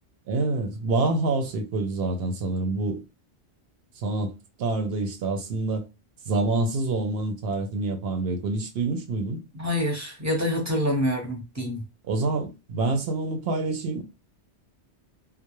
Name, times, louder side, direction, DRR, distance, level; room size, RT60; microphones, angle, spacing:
voice 1, 0.3-3.0 4.0-4.3 4.6-5.9 6.3-9.4 12.0-14.0, right 3 dB, 65° right, 0.7 m, -27 dB
voice 2, 9.5-11.8, left 1 dB, 15° right, 0.7 m, -26 dB
2.2 x 2.0 x 2.9 m
omnidirectional pair, 1.2 m